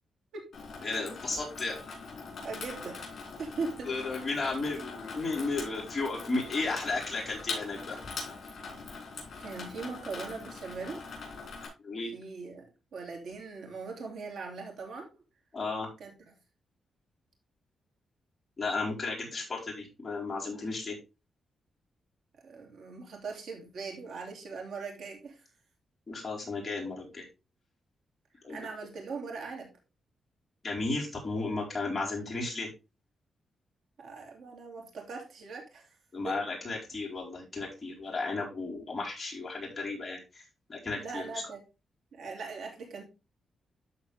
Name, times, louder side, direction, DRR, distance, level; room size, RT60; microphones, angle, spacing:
Water tap faucet / Sink (filling or washing), 0.5-11.7, left 4 dB, 60° left, 4.6 m, -42 dB
voice 1, 0.8-1.8 3.8-8.0 11.8-12.1 15.5-15.9 18.6-20.9 26.1-27.2 28.4-28.6 30.6-32.7 36.1-40.4 40.7-41.4, left 3 dB, 25° left, -4 dB, 4.3 m, -34 dB
voice 2, 2.4-3.0 3.4-4.3 9.4-11.0 12.1-12.6 12.9-15.1 16.0-16.1 22.4-25.4 28.5-29.7 34.0-35.9 36.2-36.4 41.0-41.6 42.1-43.0, right 4 dB, 75° right, 1 dB, 3.0 m, -40 dB
12.5 x 4.2 x 3.5 m, 0.28 s
wide cardioid pair, 145°, 0 cm